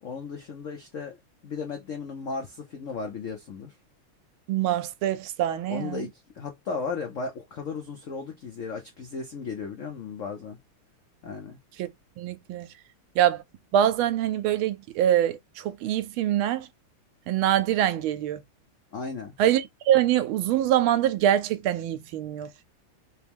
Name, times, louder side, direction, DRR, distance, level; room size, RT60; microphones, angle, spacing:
voice 1, 0.0-1.2 1.4-3.7 5.7-10.6 11.2-11.6 18.9-19.3, left 4 dB, 75° left, 0.7 m, -35 dB
voice 2, 4.5-6.0 11.8-11.9 12.2-12.7 13.2-13.4 13.7-16.7 17.3-18.4 19.4-22.5, right 11 dB, 80° right, 1.4 m, -24 dB
3.4 x 3.0 x 3.4 m
omnidirectional pair, 2.3 m